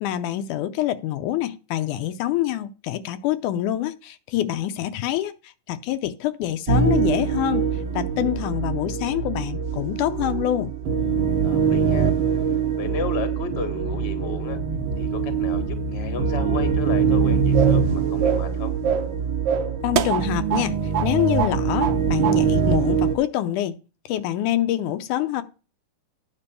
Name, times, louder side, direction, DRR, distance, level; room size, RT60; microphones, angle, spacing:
voice 1, 0.0-10.7 19.8-23.8 24.1-25.4, left 13 dB, 80° left, 2.2 m, -26 dB
sound 1, 6.7-23.2, right 6 dB, 50° right, 1.7 m, -23 dB
voice 2, 11.4-12.1 12.8-14.6 15.0-18.7, left 5 dB, 30° left, 1.1 m, -33 dB
sound 2, 17.5-17.9 18.2-18.5 18.8-19.1 19.5-20.7 20.9-21.1 21.4-22.0 22.2-22.4, right 8 dB, 75° right, 2.0 m, -25 dB
9.8 x 6.1 x 6.8 m
omnidirectional pair, 3.6 m